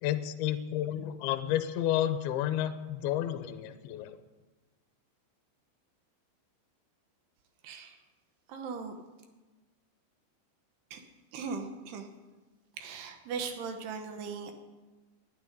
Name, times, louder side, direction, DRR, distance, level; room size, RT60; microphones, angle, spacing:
voice 1, 0.0-4.2, left 12 dB, 80° left, 9 dB, 2.2 m, -31 dB
voice 2, 7.6-8.0 8.5-8.9 10.9-11.0 11.3-12.1 12.8-14.5, right 5 dB, 70° right, 6 dB, 2.9 m, -38 dB
11.0 x 10.5 x 9.8 m, 1.2 s
omnidirectional pair, 5.5 m